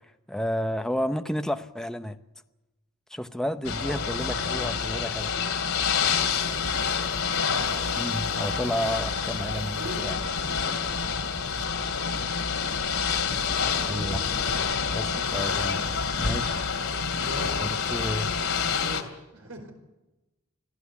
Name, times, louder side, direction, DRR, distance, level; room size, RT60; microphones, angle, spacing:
voice 1, 0.3-2.2 3.1-5.5 8.0-10.1 13.8-14.2 14.9-15.8 16.2-16.6 17.6-18.4, equal, 5° left, 8 dB, 0.8 m, -31 dB
Ocean / Boat Water vehicle, 3.6-19.0, left 6 dB, 70° left, 2.7 m, -28 dB
voice 2, 3.8-4.6 9.6-10.1 13.6-14.3 16.8-17.7 18.4-19.7, right 1 dB, 70° right, 5 dB, 4.9 m, -41 dB
26.0 x 16.5 x 8.4 m, 1.0 s
head